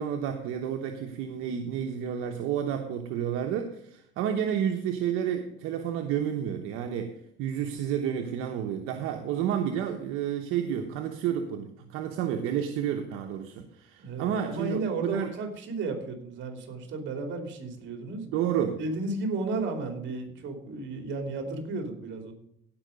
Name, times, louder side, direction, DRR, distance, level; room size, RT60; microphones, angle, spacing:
voice 1, 0.0-15.3 18.2-18.8, right 9 dB, 85° right, 4 dB, 1.0 m, -30 dB
voice 2, 14.0-18.2 18.8-22.3, right 3 dB, 60° right, 4 dB, 3.0 m, -33 dB
16.5 x 5.6 x 5.2 m, 0.73 s
cardioid pair, 125°, 21 cm